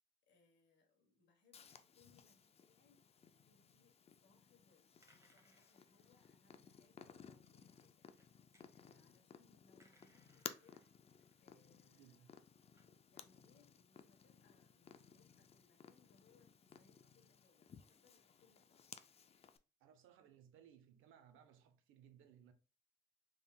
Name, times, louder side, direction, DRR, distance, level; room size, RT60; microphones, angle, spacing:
voice 1, 0.2-5.0 5.3-10.8 11.4-12.4 12.8-18.8, left 4 dB, 65° left, 1.2 m, -74 dB
Purr, 1.5-19.6, left 6 dB, 30° left, 0.4 m, -58 dB
sound 1, 5.0-6.6 7.4-7.5 7.8-8.7 9.8-12.1 12.6-12.8, equal, 15° right, 1.0 m, -73 dB
voice 2, 11.9-12.3 19.8-22.5, right 9 dB, 85° right, 0.6 m, -64 dB
3.6 x 3.4 x 2.3 m
cardioid pair, 90°, 20 cm